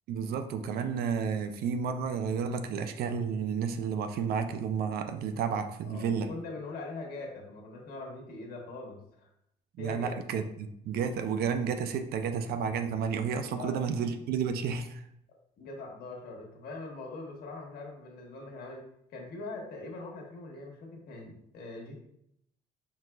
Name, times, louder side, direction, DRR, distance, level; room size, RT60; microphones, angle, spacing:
voice 1, 0.1-6.3 9.8-15.0, right 6 dB, 65° right, 8 dB, 0.5 m, -31 dB
voice 2, 5.8-9.3 9.8-10.2 13.5-13.8 15.6-18.9 19.1-21.9, left 2 dB, 70° left, 0 dB, 1.3 m, -42 dB
4.7 x 3.7 x 2.3 m, 0.75 s
cardioid pair, 110°, 17 cm